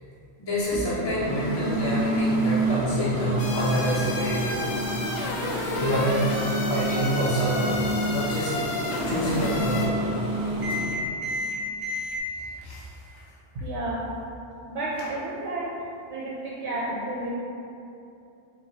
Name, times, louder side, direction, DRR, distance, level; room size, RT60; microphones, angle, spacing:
voice 1, 0.4-4.5 5.8-6.3 6.7-8.5 9.0-9.9 12.6-12.8, right 1 dB, 30° left, -8 dB, 0.6 m, -27 dB
Microwave oven, 0.6-12.2, right 1 dB, 25° right, 0.5 m, -29 dB
sound 1, 3.4-9.9, left 2 dB, 70° left, 0.9 m, -32 dB
voice 2, 13.5-14.0 14.7-15.7 16.1-17.3, right 2 dB, 85° right, -5 dB, 0.9 m, -31 dB
4.5 x 2.2 x 4.0 m, 2.7 s
omnidirectional pair, 1.2 m